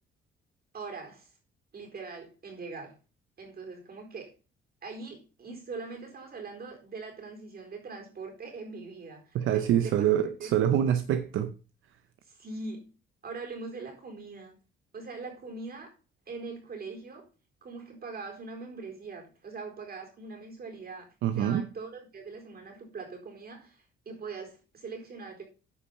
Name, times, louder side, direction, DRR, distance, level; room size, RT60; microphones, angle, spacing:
voice 1, 0.7-1.3 1.7-3.0 3.4-4.3 4.8-10.1 10.4-10.6 12.3-12.9 13.2-14.6 14.9-15.9 16.3-17.3 17.6-25.4, right 4 dB, 50° right, 4.2 m, -42 dB
voice 2, 9.3-11.5 21.2-21.7, right 10 dB, 80° right, 0.7 m, -25 dB
9.8 x 5.5 x 5.5 m
cardioid pair, 90°, 20 cm